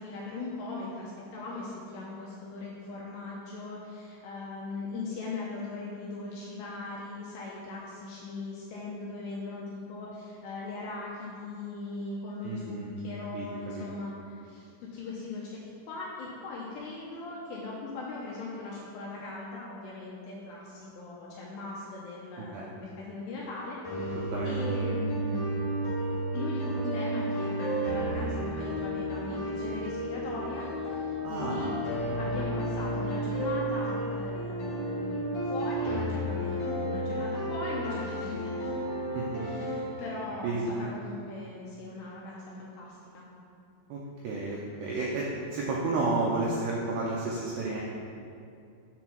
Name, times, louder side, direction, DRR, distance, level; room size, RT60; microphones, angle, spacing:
voice 1, 0.0-15.6 15.9-25.5 26.3-31.7 32.2-38.7 39.4-43.2, left 3 dB, 80° left, -4 dB, 2.5 m, -39 dB
voice 2, 12.4-12.9 13.3-13.5 13.8-13.9 22.4-22.6 24.2-24.6 31.2-31.7 39.1-39.5 40.4-40.8 43.9-47.8, right 3 dB, 85° right, -4 dB, 2.4 m, -32 dB
sound 1, 23.8-39.8, right 1 dB, 65° left, 1.9 m, -32 dB
7.8 x 4.5 x 6.1 m, 2.5 s
omnidirectional pair, 5.7 m